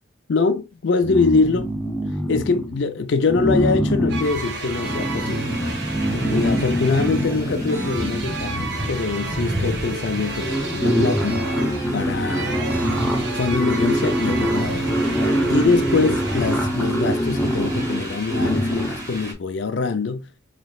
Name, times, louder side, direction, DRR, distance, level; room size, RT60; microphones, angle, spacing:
voice 1, 0.3-1.7 2.0-5.5 6.1-11.4 11.9-12.6 13.3-14.9 15.5-20.3, left 4 dB, 75° left, 0.5 m, -23 dB
sound 1, 1.0-2.8 3.3-8.9 9.9-10.0 10.2-19.1, equal, 10° left, 0.7 m, -24 dB
sound 2, 4.1-16.7, right 4 dB, 65° right, 0.8 m, -32 dB
sound 3, 4.2-19.3, equal, 20° right, 1.2 m, -34 dB
4.1 x 3.1 x 2.3 m
head